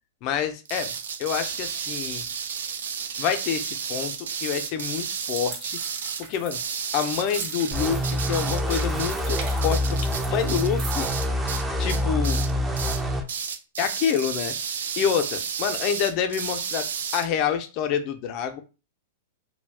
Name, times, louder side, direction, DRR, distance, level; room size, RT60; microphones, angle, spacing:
voice 1, 0.2-0.9 1.2-2.3 3.2-5.8 6.3-6.6 6.9-10.0 10.3-11.1 11.8-12.5 13.8-14.5 15.0-16.8 17.1-18.6, left 8 dB, 45° left, 8 dB, 0.5 m, -27 dB
sound 1, 0.6-11.6 11.9-12.5 12.7-13.0 13.3-17.2, right 7 dB, 80° right, 0.3 m, -32 dB
sound 2, 5.1-11.1, right 5 dB, 55° right, 0.8 m, -41 dB
sound 3, 7.7-13.2, left 1 dB, 10° right, 0.5 m, -26 dB
2.3 x 2.1 x 3.3 m, 0.32 s
hypercardioid pair, 115°, 0 cm